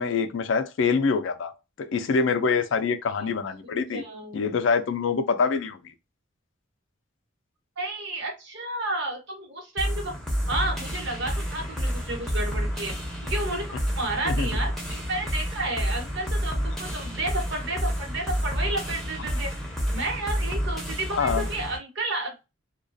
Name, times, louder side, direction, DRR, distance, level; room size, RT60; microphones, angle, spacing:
voice 1, 0.0-1.5 1.8-4.0 4.3-5.9 14.2-14.5 21.1-21.5, left 5 dB, 65° left, 0.4 m, -25 dB
voice 2, 3.9-4.5 7.8-10.1 10.5-12.9 13.2-13.6 13.9-19.5 19.9-22.5, right 2 dB, 55° right, 0.9 m, -31 dB
sound 1, 9.8-21.8, equal, ahead, 0.6 m, -29 dB
2.3 x 2.2 x 2.5 m
head